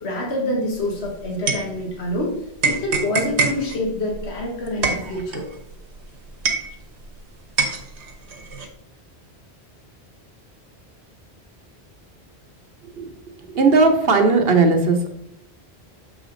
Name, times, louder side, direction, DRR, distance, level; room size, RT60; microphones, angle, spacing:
voice 1, 0.0-2.4 2.6-5.5, left 1 dB, 75° left, 0 dB, 1.6 m, -26 dB
sound 1, 0.7-2.2 2.6-7.2 7.6-8.7, right 4 dB, 90° right, 1.4 m, -25 dB
voice 2, 13.5-15.1, right 3 dB, 65° right, 5 dB, 1.1 m, -16 dB
7.0 x 5.1 x 3.8 m, 0.79 s
omnidirectional pair, 1.1 m